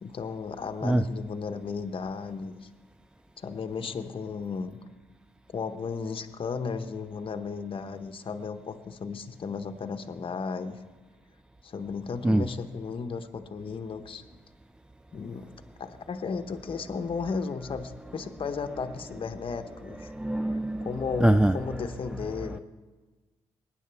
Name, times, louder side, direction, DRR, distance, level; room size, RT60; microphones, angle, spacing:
voice 1, 0.0-2.7 3.4-4.8 5.5-10.8 11.6-14.2 15.1-15.5 15.8-20.1 20.8-22.6, left 5 dB, 50° left, 7 dB, 0.9 m, -34 dB
voice 2, 20.1-20.9 21.2-21.6, right 1 dB, 5° right, 11 dB, 0.3 m, -23 dB
20.0 x 9.6 x 3.4 m, 1.3 s
supercardioid pair, 65°, 12 cm